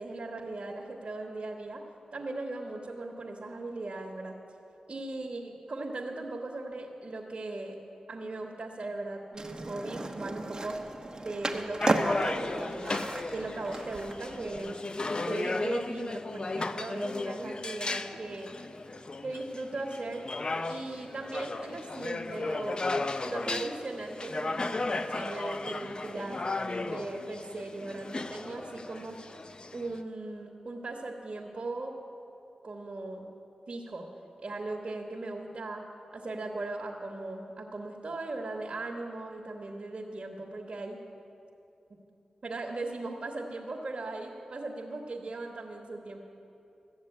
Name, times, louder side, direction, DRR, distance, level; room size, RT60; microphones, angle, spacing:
voice 1, 0.0-1.9 2.1-4.4 4.9-7.8 8.1-10.8 11.1-13.0 13.3-14.8 15.3-18.5 19.2-20.3 20.7-22.9 23.2-26.4 26.8-29.2 29.7-31.9 32.6-33.2 33.7-34.1 34.4-41.0 42.4-46.2, right 2 dB, 55° right, 0 dB, 1.3 m, -38 dB
Skateboard, 9.3-14.6, right 2 dB, 35° right, 1.0 m, -34 dB
sound 1, 11.8-30.0, left 3 dB, 40° left, 0.5 m, -35 dB
14.0 x 7.2 x 8.6 m, 2.7 s
cardioid pair, 55°, 2 cm